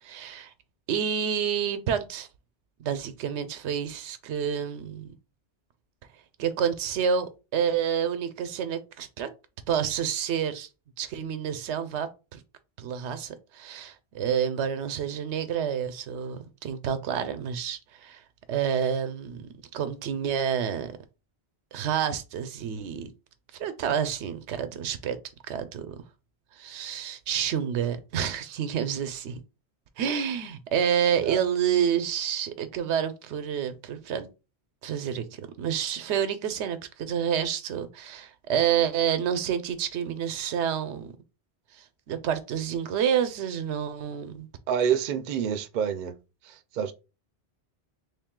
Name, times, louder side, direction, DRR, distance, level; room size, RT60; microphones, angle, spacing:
voice 1, 0.0-0.5 0.9-2.3 2.8-5.1 6.4-9.3 9.7-10.7 11.0-12.4 12.8-18.2 18.5-21.0 21.7-23.1 23.6-25.2 25.5-25.9 26.5-29.4 30.0-34.3 34.8-41.1 41.7-44.5, right 8 dB, 90° right, 0.9 m, -29 dB
voice 2, 44.7-46.1 46.4-46.9, right 8 dB, 55° right, 0.5 m, -27 dB
3.3 x 2.6 x 3.6 m
omnidirectional pair, 1.1 m